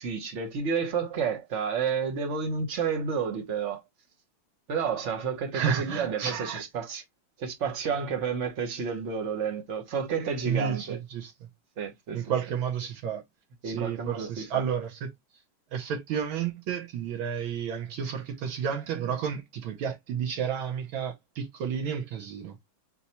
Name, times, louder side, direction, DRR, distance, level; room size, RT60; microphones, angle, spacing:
voice 1, 0.0-3.8 4.7-7.0 7.4-11.0 11.8-12.2 13.6-14.6, right 6 dB, 50° right, 0.9 m, -30 dB
voice 2, 5.5-6.6 10.5-11.3 12.1-13.2 13.6-15.1 15.7-22.7, right 8 dB, 75° right, 1.5 m, -31 dB
4.2 x 2.3 x 4.2 m
omnidirectional pair, 2.3 m